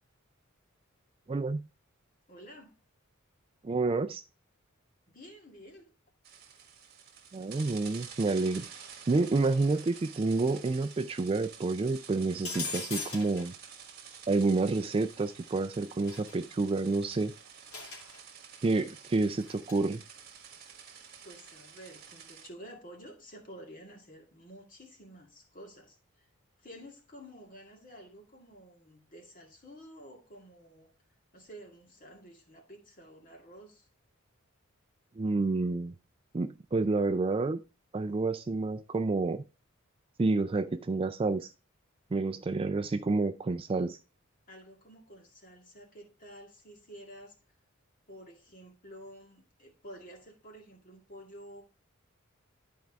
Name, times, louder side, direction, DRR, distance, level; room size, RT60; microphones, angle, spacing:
voice 1, 1.3-1.6 3.6-4.2 7.3-8.7 9.1-13.5 14.3-17.3 18.6-20.0 35.2-35.9 36.3-37.6 37.9-39.4 40.2-41.5 42.1-44.0, right 3 dB, 25° right, 0.3 m, -29 dB
voice 2, 2.3-2.7 5.1-5.9 21.2-26.3 26.6-30.9 31.3-33.9 44.5-47.4 48.1-51.6, equal, 40° left, 2.0 m, -51 dB
sound 1, 6.2-22.5, right 7 dB, 45° right, 1.3 m, -49 dB
sound 2, 12.4-13.5 16.1-16.3 17.7-18.2 19.4-19.7, left 4 dB, 75° left, 3.0 m, -38 dB
11.5 x 4.6 x 3.5 m
head